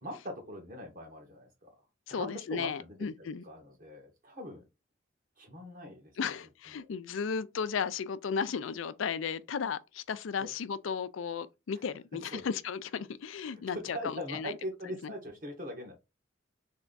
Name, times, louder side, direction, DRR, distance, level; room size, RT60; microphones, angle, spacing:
voice 1, 0.0-1.7 2.1-4.7 5.4-6.1 6.7-6.9 10.4-10.5 11.7-11.8 12.3-12.4 13.5-15.9, equal, 45° right, 1.6 m, -42 dB
voice 2, 2.1-3.4 6.2-14.6 15.0-15.1, left 6 dB, 90° left, 0.4 m, -35 dB
3.5 x 3.4 x 3.9 m
head